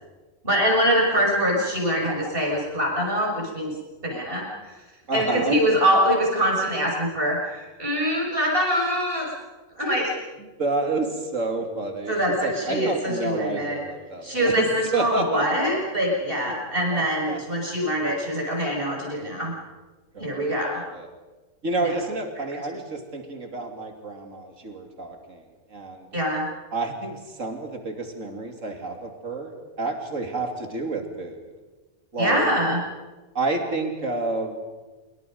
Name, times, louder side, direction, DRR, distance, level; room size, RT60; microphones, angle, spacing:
voice 1, 0.4-3.7 4.0-4.7 5.1-9.3 9.8-10.1 12.1-13.8 14.2-19.5 20.2-20.8 21.8-21.9 26.1-26.5 32.2-32.8, equal, 35° right, -1 dB, 6.5 m, -24 dB
voice 2, 5.1-5.6 10.4-15.5 16.5-16.6 16.9-17.4 20.1-21.1 21.6-25.4 25.7-26.1 26.7-31.4 32.1-32.5 33.3-34.6, right 3 dB, 60° right, 4 dB, 3.3 m, -29 dB
27.0 x 23.5 x 5.4 m, 1.2 s
omnidirectional pair, 1.5 m